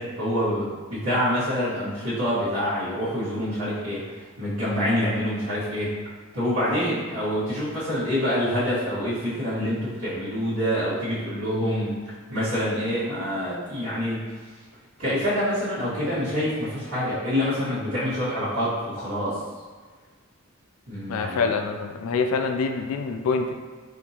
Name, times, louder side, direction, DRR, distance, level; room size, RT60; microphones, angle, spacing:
voice 1, 0.0-4.0 4.4-5.9 6.3-11.9 12.3-14.2 15.0-19.4 20.9-21.5, equal, 90° right, -15 dB, 1.4 m, -26 dB
voice 2, 21.1-23.5, left 4 dB, 75° left, 6 dB, 0.3 m, -25 dB
4.2 x 2.7 x 2.8 m, 1.5 s
head